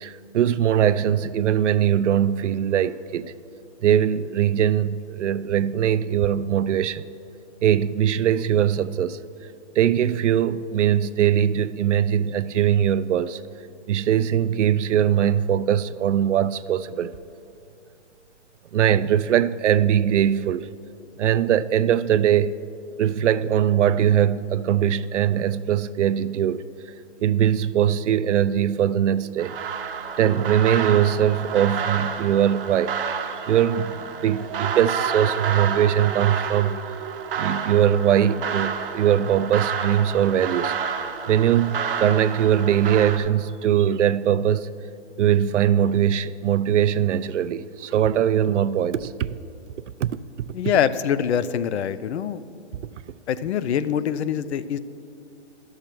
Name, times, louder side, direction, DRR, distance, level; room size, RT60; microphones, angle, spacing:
voice 1, 0.0-3.3 3.8-7.0 7.6-9.2 9.8-13.4 13.9-17.1 18.7-20.7 21.2-22.5 23.0-26.6 27.2-29.5 30.2-36.8 37.4-40.8 41.3-44.7 45.2-49.3 50.0-50.1 50.4-50.5, right 10 dB, 85° right, 0.5 m, -21 dB
sound 1, 29.4-43.2, right 7 dB, 50° right, 0.7 m, -30 dB
voice 2, 50.5-52.4 53.3-54.8, left 8 dB, 70° left, 0.5 m, -24 dB
12.0 x 6.6 x 4.5 m
hypercardioid pair, 150°, 35 cm